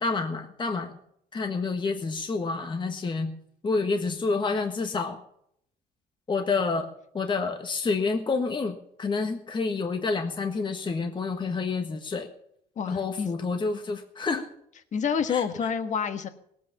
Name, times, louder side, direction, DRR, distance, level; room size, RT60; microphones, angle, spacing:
voice 1, 0.0-0.9 1.3-3.3 3.6-5.2 6.3-6.9 7.1-12.3 12.9-14.5 15.3-15.4, left 4 dB, 30° left, 5 dB, 1.4 m, -28 dB
voice 2, 12.7-13.3 14.9-16.3, left 7 dB, 45° left, 9 dB, 1.6 m, -28 dB
18.5 x 8.6 x 7.2 m, 0.71 s
cardioid pair, 110°, 17 cm